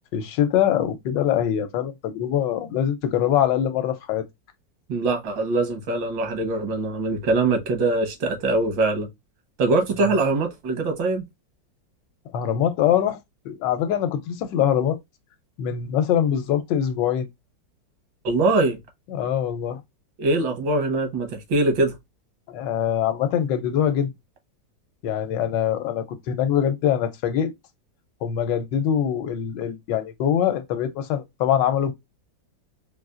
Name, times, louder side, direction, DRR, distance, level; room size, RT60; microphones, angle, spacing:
voice 1, 0.1-4.2 10.1-10.2 12.3-13.2 13.4-15.0 15.6-17.3 19.1-19.8 22.5-24.1 25.0-27.5 28.2-31.9, left 9 dB, 75° left, 1.3 m, -23 dB
voice 2, 4.9-9.1 9.6-11.2 18.2-18.8 20.2-21.9, right 2 dB, 80° right, 1.8 m, -22 dB
4.2 x 2.4 x 2.3 m
omnidirectional pair, 2.0 m